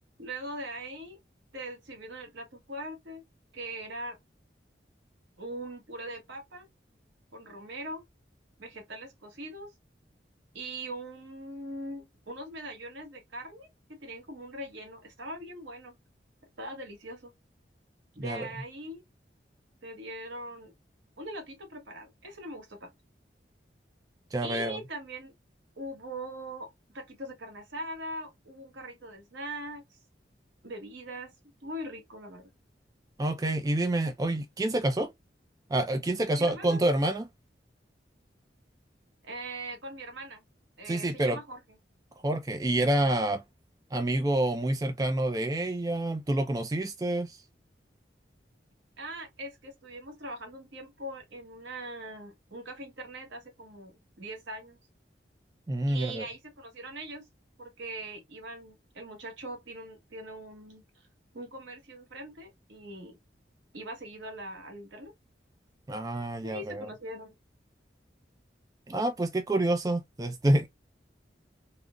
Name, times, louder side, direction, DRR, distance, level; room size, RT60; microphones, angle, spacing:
voice 1, 0.2-1.2 1.5-3.2 3.5-4.2 5.4-6.7 7.3-8.0 8.6-9.7 10.5-16.0 16.6-17.3 18.1-19.0 19.8-20.7 21.2-22.9 24.4-25.3 25.8-30.0 30.6-31.3 31.6-32.5 36.4-36.8 39.2-40.4 40.8-41.6 49.0-54.8 55.9-57.3 57.6-61.0 61.3-63.2 63.7-65.1 66.4-67.3, right 1 dB, 90° right, 1.0 m, -41 dB
voice 2, 24.3-24.8 33.2-35.1 35.7-37.3 40.9-41.4 42.2-43.4 43.9-47.4 55.7-56.3 65.9-66.9 68.9-70.7, right 1 dB, 20° right, 0.3 m, -28 dB
3.5 x 2.0 x 2.3 m
head